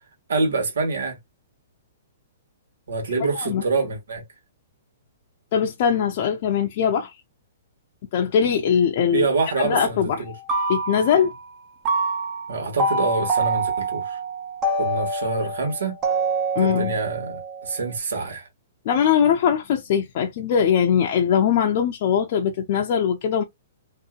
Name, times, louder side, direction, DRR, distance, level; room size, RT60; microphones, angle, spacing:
voice 1, 0.3-1.2 2.9-4.2 9.1-10.3 12.5-14.2 14.8-16.0 16.6-18.5, right 3 dB, 85° right, 1.5 m, -26 dB
voice 2, 5.5-7.2 8.1-9.3 9.6-10.2 10.7-11.3 16.6-17.0 18.9-23.4, left 8 dB, 45° left, 0.5 m, -21 dB
sound 1, 10.3-11.5 11.9-18.0, right 2 dB, 25° right, 0.7 m, -26 dB
2.7 x 2.7 x 2.3 m
hypercardioid pair, 155°, 0 cm